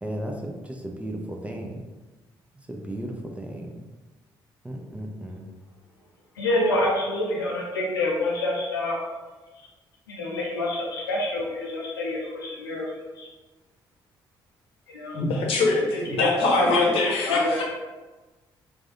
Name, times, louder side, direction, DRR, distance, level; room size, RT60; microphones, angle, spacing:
voice 1, 0.0-1.8 2.7-3.8 4.6-5.4, right 1 dB, 10° right, 1 dB, 0.6 m, -35 dB
voice 2, 6.4-9.0 10.1-12.9 13.2-13.3 14.9-15.2 15.9-17.6, left 2 dB, 80° left, -3 dB, 0.5 m, -26 dB
voice 3, 15.1-17.6, left 3 dB, 55° left, -1 dB, 0.8 m, -24 dB
4.7 x 2.4 x 2.6 m, 1.2 s
figure-of-eight pair, 40°, 12 cm